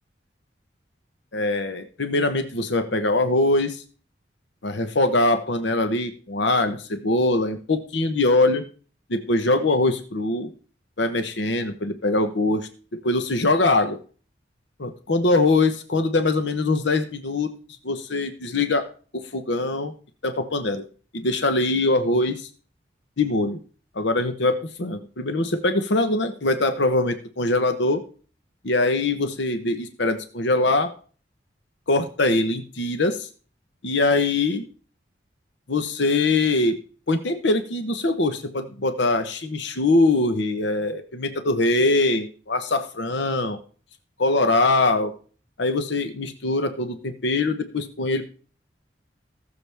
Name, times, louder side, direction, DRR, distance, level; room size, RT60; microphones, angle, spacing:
voice 1, 1.3-3.8 4.6-8.6 9.1-10.5 11.0-14.0 14.8-17.5 17.8-18.8 19.1-19.9 20.2-20.8 21.1-22.5 23.2-23.6 23.9-28.0 28.6-30.9 31.9-33.3 33.8-34.6 35.7-36.8 37.1-43.6 44.2-45.1 45.6-48.2, left 2 dB, 75° left, 8 dB, 1.0 m, -22 dB
19.0 x 7.0 x 3.4 m, 0.40 s
head